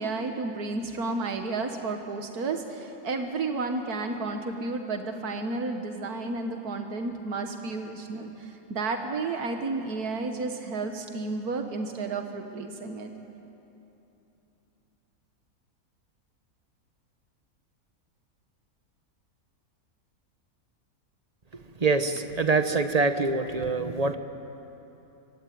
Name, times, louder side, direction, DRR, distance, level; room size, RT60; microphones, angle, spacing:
voice 1, 0.0-13.1, right 3 dB, 85° right, 5 dB, 2.0 m, -32 dB
voice 2, 21.8-24.1, right 3 dB, 30° right, 8 dB, 1.2 m, -25 dB
25.5 x 25.0 x 9.4 m, 2.9 s
omnidirectional pair, 1.6 m